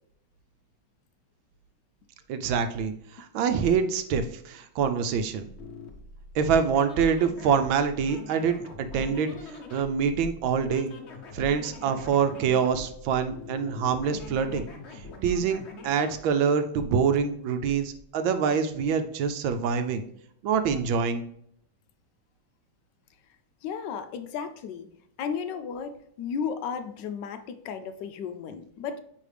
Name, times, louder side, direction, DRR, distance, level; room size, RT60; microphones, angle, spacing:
voice 1, 2.3-5.5 6.3-10.9 11.3-14.7 15.2-20.0 20.4-21.2, right 6 dB, 75° right, 9 dB, 1.3 m, -25 dB
sound 1, 5.4-16.2, left 3 dB, 50° left, 0.8 m, -44 dB
voice 2, 23.6-24.9 25.2-29.0, left 6 dB, 75° left, 9 dB, 1.0 m, -34 dB
9.3 x 3.2 x 3.3 m, 0.70 s
omnidirectional pair, 2.3 m